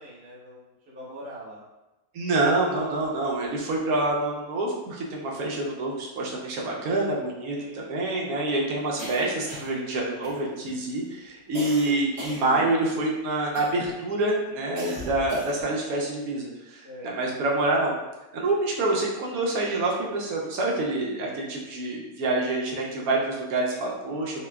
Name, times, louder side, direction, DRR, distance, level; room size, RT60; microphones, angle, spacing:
voice 1, 0.0-1.6 2.7-3.1 7.5-7.8 16.8-17.1 24.4-24.5, right 1 dB, 10° right, -9 dB, 0.6 m, -43 dB
voice 2, 2.1-17.9 18.3-24.5, right 2 dB, 80° right, -2 dB, 1.1 m, -27 dB
sound 1, 9.0-9.9 10.2-10.7 11.5-13.0 13.5-14.0 14.8-15.8, right 1 dB, 50° right, 1.0 m, -38 dB
4.0 x 2.1 x 2.3 m, 1.0 s
omnidirectional pair, 1.5 m